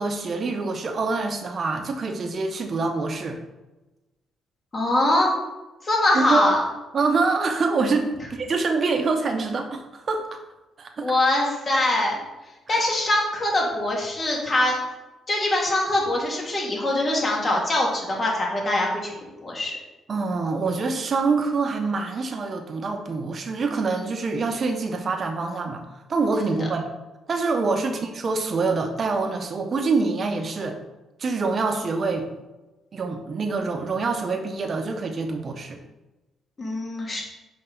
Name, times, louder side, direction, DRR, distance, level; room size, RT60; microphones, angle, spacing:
voice 1, 0.0-3.4 6.1-6.4 6.9-10.4 10.8-11.1 12.7-12.8 20.1-25.8 26.1-26.8 27.3-30.8 31.2-32.3 32.9-35.8, right 4 dB, 45° right, 4 dB, 0.9 m, -25 dB
voice 2, 4.7-5.3 5.8-6.6 11.0-12.2 12.7-14.8 15.3-19.7 27.7-27.9 36.6-37.2, left 1 dB, 35° left, -2 dB, 2.0 m, -23 dB
5.7 x 5.3 x 3.9 m, 1.1 s
cardioid pair, 90°, 0 cm